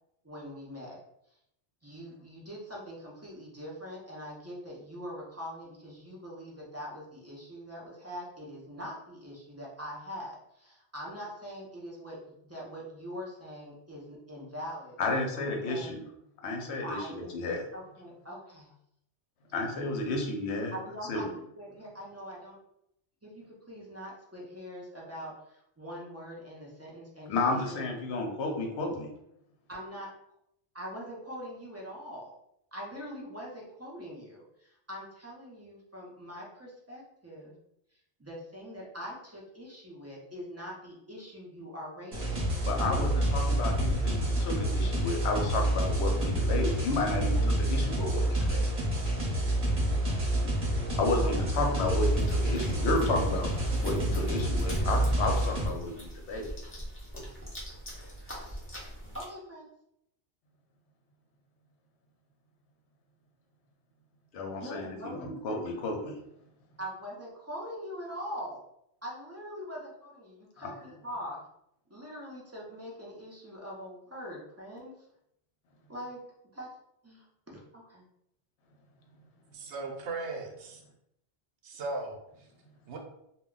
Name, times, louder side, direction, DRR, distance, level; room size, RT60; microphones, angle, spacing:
voice 1, 0.2-1.0 1.8-15.0 15.4-16.0 16.8-17.3 17.7-18.7 19.8-19.9 20.7-21.3 21.6-22.6 23.2-27.9 29.7-30.1 30.7-32.3 32.7-37.5 38.2-43.1 46.5-46.8 47.3-47.5 51.3-51.7 58.8-59.7 64.6-65.7 66.8-68.6 69.0-71.4 71.9-75.1 75.9-76.2 76.5-76.7 77.0-78.0, equal, 20° right, -4 dB, 0.4 m, -43 dB
voice 2, 15.0-16.0 16.4-17.0 17.3-17.6 19.5-20.7 21.1-21.2 27.3-29.1 42.7-47.4 47.7-48.6 51.0-56.4 57.1-57.2 64.3-66.1 70.6-70.7, left 2 dB, 75° left, 2 dB, 0.9 m, -32 dB
sound 1, 42.1-55.7, right 1 dB, 35° right, 0.9 m, -28 dB
sound 2, 52.0-59.2, equal, 15° left, 0.7 m, -41 dB
voice 3, 79.5-80.8 81.6-82.2 82.9-83.0, right 3 dB, 85° right, 2 dB, 0.9 m, -37 dB
2.2 x 2.2 x 3.7 m, 0.78 s
omnidirectional pair, 1.2 m